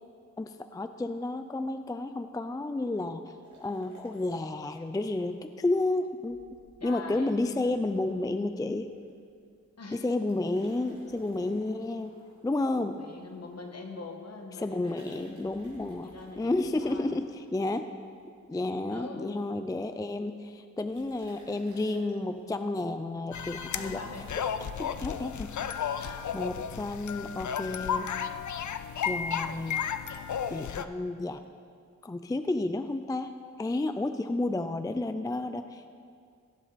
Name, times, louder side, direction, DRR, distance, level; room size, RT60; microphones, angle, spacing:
voice 1, 0.4-6.4 6.8-8.9 9.9-12.1 12.4-13.0 14.6-17.9 18.5-24.0 24.4-25.5 25.8-26.0 26.3-28.1 29.0-29.8 30.5-31.4 32.0-33.3 33.6-36.0, left 2 dB, 15° left, 9 dB, 0.3 m, -31 dB
sound 1, 3.4-5.3 5.6-5.7 6.3-9.2 9.4-9.7 10.2-13.5 14.7-17.7 18.2-18.7 19.0-19.1 19.3-19.4 19.5-19.8 20.9-22.3, right 1 dB, 80° right, 2.5 m, -57 dB
voice 2, 6.8-7.5 9.8-10.0 12.8-15.4 16.0-17.1 18.9-19.4 23.7-24.4 26.0-26.2, left 3 dB, 60° left, 3 dB, 1.3 m, -43 dB
sound 2, 23.3-30.8, left 7 dB, 75° left, 0.5 m, -33 dB
17.0 x 7.5 x 4.1 m, 2.2 s
wide cardioid pair, 90°, 29 cm